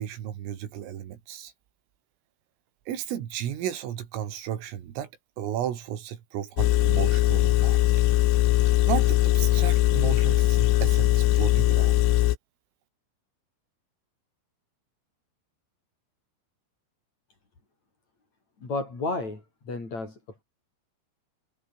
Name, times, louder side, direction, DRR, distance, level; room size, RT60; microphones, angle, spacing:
voice 1, 0.0-1.5 2.9-5.1 5.4-7.8 8.8-12.0, right 10 dB, 75° right, 5.2 m, -33 dB
Engine, 6.6-12.4, left 16 dB, 75° left, 3.5 m, -21 dB
voice 2, 18.6-20.1, left 3 dB, 35° left, 7.3 m, -32 dB
omnidirectional pair, 6.0 m